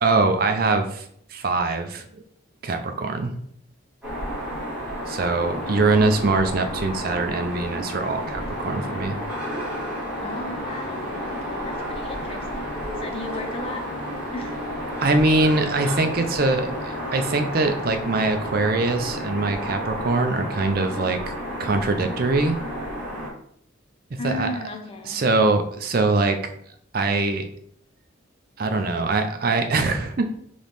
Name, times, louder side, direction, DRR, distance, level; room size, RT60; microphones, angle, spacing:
voice 1, 0.0-1.0 1.3-2.2 2.6-3.3 5.1-9.2 15.0-21.2 21.6-22.6 24.2-24.5 25.0-26.5 26.9-27.5 28.6-30.3, right 3 dB, 45° right, 6 dB, 0.5 m, -22 dB
sound 1, 4.0-23.3, equal, 5° right, 1.2 m, -31 dB
voice 2, 10.2-13.8 14.3-14.6 24.2-25.2, left 2 dB, 30° left, 4 dB, 0.5 m, -35 dB
4.0 x 3.0 x 3.4 m, 0.66 s
head